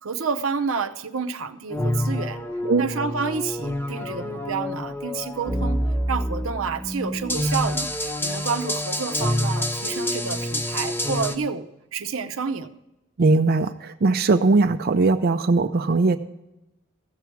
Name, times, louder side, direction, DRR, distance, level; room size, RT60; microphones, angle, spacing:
voice 1, 0.0-2.4 2.8-5.8 6.1-12.8, right 5 dB, 85° right, 9 dB, 0.7 m, -29 dB
sound 1, 1.7-11.4, left 1 dB, 10° left, 0.8 m, -27 dB
voice 2, 13.2-16.2, right 3 dB, 50° right, 7 dB, 0.5 m, -20 dB
15.0 x 7.0 x 4.6 m, 0.94 s
head